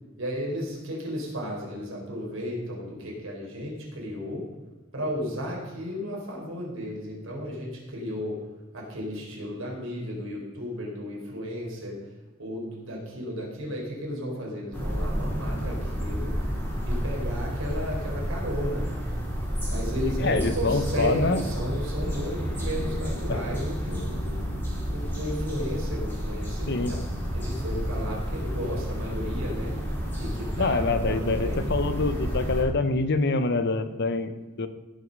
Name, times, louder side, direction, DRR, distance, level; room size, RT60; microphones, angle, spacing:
voice 1, 0.2-4.5 4.9-8.4 8.7-12.1 12.4-18.9 19.7-24.4 24.9-31.6, equal, 65° right, -2 dB, 4.2 m, -34 dB
sound 1, 14.7-32.6, equal, 10° left, 3.4 m, -30 dB
voice 2, 20.2-21.4 23.3-23.4 26.7-26.9 30.6-34.3 34.6-34.7, left 3 dB, 55° left, 11 dB, 0.8 m, -25 dB
16.5 x 6.4 x 5.3 m, 1.2 s
head